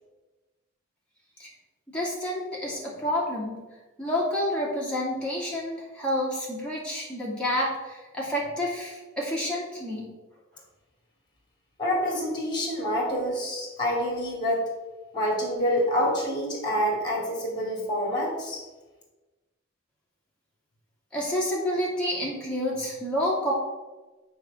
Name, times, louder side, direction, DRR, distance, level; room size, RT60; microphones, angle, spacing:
voice 1, 1.9-3.6 4.0-10.1 21.1-23.5, left 1 dB, 5° left, -6 dB, 2.5 m, -29 dB
voice 2, 11.8-14.7 15.1-18.6, equal, 20° left, -2 dB, 2.7 m, -27 dB
8.2 x 4.6 x 7.1 m, 1.2 s
head